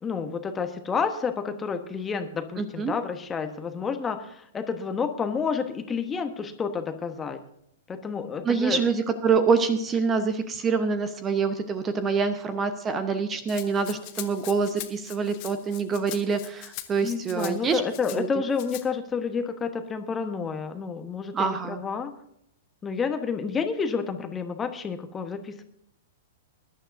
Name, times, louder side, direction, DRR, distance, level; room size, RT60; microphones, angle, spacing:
voice 1, 0.0-7.4 7.9-8.8 17.0-22.1 22.8-25.6, left 5 dB, 15° left, 8 dB, 1.2 m, -30 dB
voice 2, 2.6-2.9 8.4-17.8 18.1-18.3 21.3-21.8, right 5 dB, 20° right, 10 dB, 1.0 m, -26 dB
Rattle (instrument), 13.5-18.2 18.5-18.8, left 16 dB, 40° left, 1.2 m, -41 dB
21.5 x 11.5 x 2.7 m, 0.72 s
figure-of-eight pair, 105°, 0 cm